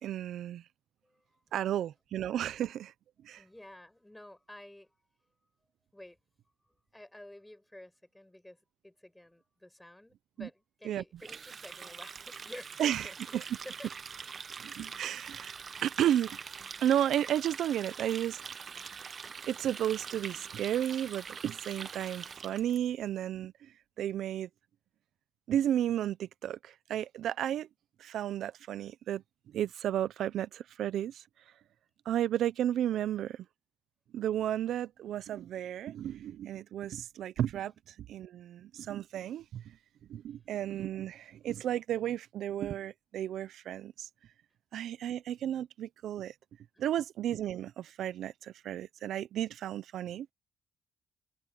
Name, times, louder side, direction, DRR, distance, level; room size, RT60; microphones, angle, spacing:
voice 1, 0.0-0.6 1.5-2.9 3.2-3.4 10.4-10.5 10.9-11.0 12.8-13.0 14.6-16.4 16.8-18.4 18.7-18.9 19.5-23.7 24.0-24.5 25.5-27.7 28.0-31.2 32.1-33.4 34.1-37.7 38.1-39.8 40.1-44.1 44.7-46.3 46.8-50.3, right 11 dB, 75° right, 0.7 m, -33 dB
voice 2, 1.0-1.6 3.3-5.3 5.9-6.2 6.6-13.4 13.6-13.9 32.9-33.2 37.7-37.8 40.3-40.4 46.7-47.0, left 1 dB, 10° left, 6.9 m, -51 dB
Water tap faucet, 11.2-22.8, right 6 dB, 45° right, 1.1 m, -44 dB
cardioid pair, 90°, 0 cm